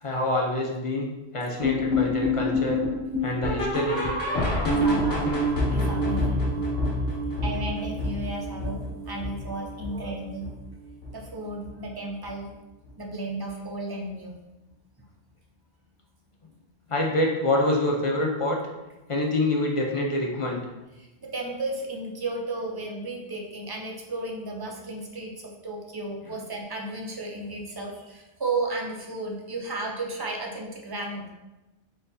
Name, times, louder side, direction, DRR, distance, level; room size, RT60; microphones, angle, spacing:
voice 1, 0.0-2.8 3.2-4.0 9.9-10.1 16.9-18.6 19.1-20.6 26.2-26.3, left 1 dB, 40° left, -1 dB, 0.5 m, -26 dB
sound 1, 1.6-10.7 11.0-11.3 11.6-11.7 12.2-12.3 12.8-12.9, left 1 dB, 60° left, 1.1 m, -27 dB
voice 2, 4.7-5.4 5.7-6.7 7.4-10.5 11.1-12.5 13.0-14.4 21.0-31.3, right 2 dB, 30° right, 0 dB, 0.4 m, -34 dB
4.4 x 3.9 x 2.6 m, 1.0 s
omnidirectional pair, 1.1 m